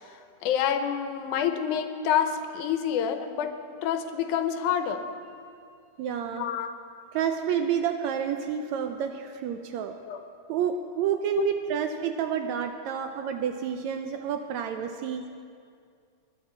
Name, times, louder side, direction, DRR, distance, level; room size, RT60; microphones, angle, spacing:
voice 1, 0.4-3.5 3.8-5.0 6.3-6.7 10.0-10.2 11.4-11.8, left 8 dB, 80° left, 8 dB, 2.2 m, -27 dB
voice 2, 6.0-6.5 7.1-10.0 10.5-15.3, right 8 dB, 80° right, 6 dB, 1.7 m, -29 dB
20.5 x 10.5 x 4.4 m, 2.3 s
omnidirectional pair, 3.6 m